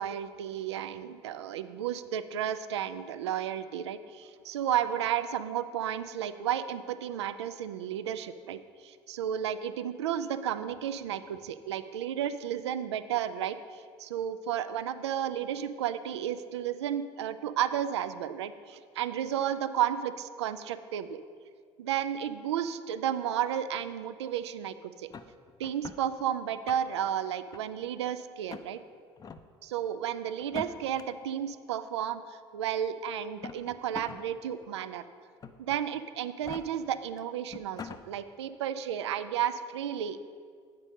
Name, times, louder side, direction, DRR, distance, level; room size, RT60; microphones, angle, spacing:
voice 1, 0.0-21.2 21.8-25.1 25.6-28.8 29.6-35.0 35.6-40.2, right 10 dB, 75° right, 12 dB, 0.4 m, -33 dB
sound 1, 25.1-26.0 26.5-27.1 27.5-28.1 28.5-28.7 29.2-29.4 30.4-31.0 32.1-32.2 33.2-34.2 34.6-34.7 35.4-35.8 36.3-36.6 37.2-37.3 37.5-38.0, left 6 dB, 25° left, 0.4 m, -43 dB
8.2 x 5.2 x 5.3 m, 2.1 s
figure-of-eight pair, 60°, 15 cm